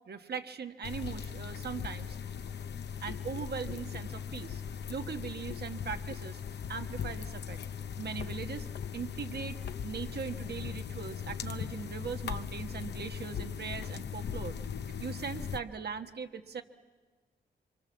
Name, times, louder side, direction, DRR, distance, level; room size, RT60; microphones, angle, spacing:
voice 1, 0.1-2.2 3.0-4.6 4.9-6.4 6.7-7.6 8.0-8.7 8.9-14.6 15.0-16.6, right 6 dB, 65° right, 6 dB, 1.5 m, -40 dB
sound 1, 0.8-15.6, left 7 dB, 70° left, 0.9 m, -39 dB
26.5 x 25.0 x 7.4 m, 1.4 s
cardioid pair, 70°, 18 cm